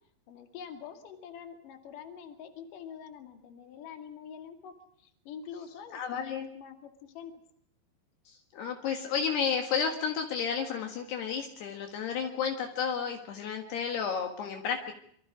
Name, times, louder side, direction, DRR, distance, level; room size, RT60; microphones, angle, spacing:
voice 1, 0.3-7.3, left 7 dB, 55° left, 5 dB, 3.4 m, -46 dB
voice 2, 5.9-6.5 8.3-14.9, left 6 dB, 70° left, 3 dB, 3.5 m, -32 dB
27.0 x 23.5 x 5.0 m, 0.67 s
omnidirectional pair, 5.2 m